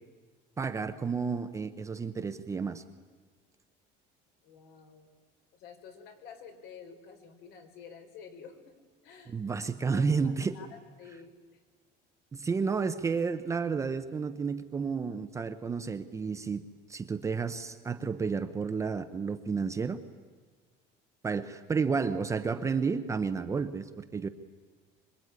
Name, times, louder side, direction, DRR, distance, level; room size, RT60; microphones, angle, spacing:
voice 1, 0.6-2.8 9.3-10.6 12.3-16.6 16.9-20.0 21.2-24.3, right 5 dB, 15° right, 9 dB, 0.7 m, -31 dB
voice 2, 4.4-5.1 5.5-8.8 9.0-9.4 9.8-11.6, left 6 dB, 55° left, 6 dB, 3.5 m, -50 dB
25.0 x 22.0 x 9.6 m, 1.5 s
cardioid pair, 180°, 19 cm